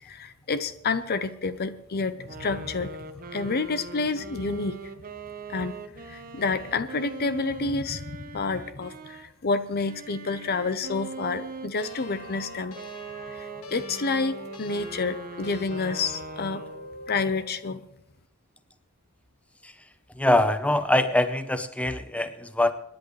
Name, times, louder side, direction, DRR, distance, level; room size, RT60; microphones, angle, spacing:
voice 1, 0.0-2.9 3.3-4.8 5.5-12.8 13.3-16.6 17.1-17.8, left 4 dB, 45° left, 12 dB, 0.7 m, -29 dB
sound 1, 2.2-9.3 9.8-17.0, right 4 dB, 40° right, 1.1 m, -41 dB
sound 2, 11.8-17.5, left 2 dB, 80° left, 1.7 m, -43 dB
voice 2, 20.2-22.7, left 1 dB, 5° left, 10 dB, 0.7 m, -23 dB
26.5 x 10.5 x 3.2 m, 0.83 s
head